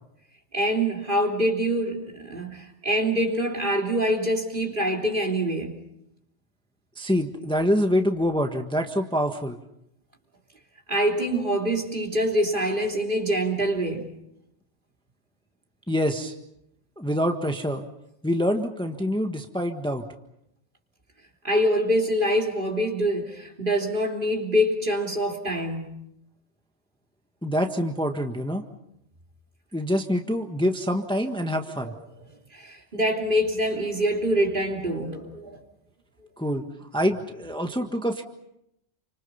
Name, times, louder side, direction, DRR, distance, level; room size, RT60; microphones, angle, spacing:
voice 1, 0.5-5.8 10.9-14.1 21.4-26.0 31.8-31.9 32.5-35.6, equal, 45° right, 3.6 m, -25 dB
voice 2, 7.0-9.6 15.9-16.3 17.0-17.8 18.2-20.0 27.4-28.6 29.7-31.9 36.4-36.6 36.9-38.2, equal, 5° left, 1.4 m, -25 dB
29.0 x 25.5 x 5.6 m
omnidirectional pair, 1.2 m